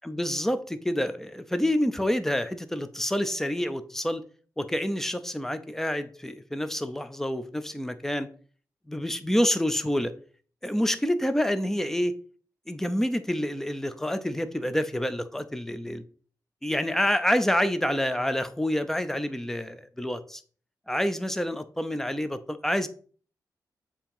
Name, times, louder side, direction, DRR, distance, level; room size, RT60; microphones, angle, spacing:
voice 1, 0.0-4.2 4.6-8.3 8.9-10.1 10.6-12.1 12.7-16.0 16.6-20.4 20.9-22.9, equal, 5° left, 11 dB, 0.6 m, -27 dB
7.1 x 2.9 x 5.4 m, 0.43 s
wide cardioid pair, 110°, 7 cm